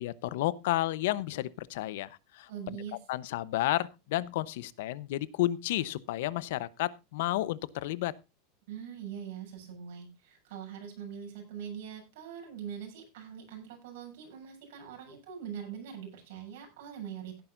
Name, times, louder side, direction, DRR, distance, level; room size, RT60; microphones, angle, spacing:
voice 1, 0.0-2.5 3.1-8.1, left 15 dB, 65° left, 19 dB, 0.8 m, -31 dB
voice 2, 2.5-3.0 8.7-17.4, right 8 dB, 65° right, 2 dB, 7.7 m, -43 dB
17.0 x 10.5 x 2.6 m, 0.26 s
supercardioid pair, 170°, 0 cm